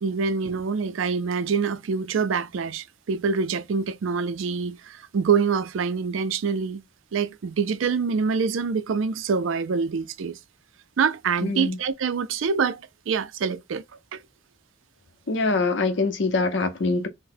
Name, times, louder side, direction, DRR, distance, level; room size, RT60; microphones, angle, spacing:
voice 1, 0.0-6.8 7.1-10.4 11.0-13.8 14.1-14.2, right 5 dB, 75° right, 0.4 m, -25 dB
voice 2, 11.4-11.8 15.3-17.1, left 3 dB, 60° left, 0.6 m, -24 dB
3.9 x 2.1 x 2.6 m
head